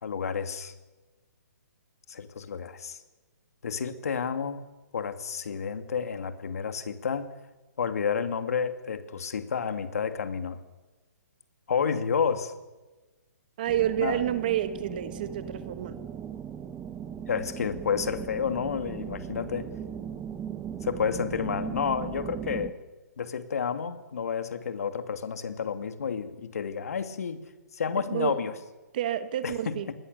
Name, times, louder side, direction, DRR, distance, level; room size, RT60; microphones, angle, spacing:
voice 1, 0.0-0.7 2.1-3.0 3.6-4.6 4.9-7.3 7.8-10.6 11.7-12.5 14.0-14.2 17.3-19.7 20.8-22.8 23.2-27.4 27.7-28.5 29.4-29.9, left 6 dB, 60° left, 8 dB, 2.4 m, -30 dB
voice 2, 13.6-16.0 28.1-28.4 28.9-29.9, right 11 dB, 30° right, 11 dB, 1.3 m, -29 dB
sound 1, 13.7-22.7, right 8 dB, 10° right, 0.7 m, -38 dB
28.0 x 20.5 x 6.9 m, 1.2 s
hypercardioid pair, 170°, 9 cm